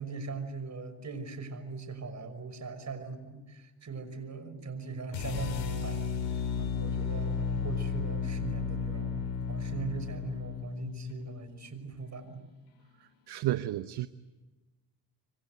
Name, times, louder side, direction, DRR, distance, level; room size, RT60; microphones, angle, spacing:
voice 1, 0.0-6.0 6.6-12.4, right 4 dB, 40° right, 10 dB, 6.0 m, -40 dB
sound 1, 5.1-11.3, left 6 dB, 85° left, 6.2 m, -33 dB
voice 2, 13.3-14.1, right 14 dB, 65° right, 12 dB, 1.0 m, -31 dB
26.5 x 25.0 x 8.1 m, 1.2 s
supercardioid pair, 75°, 43 cm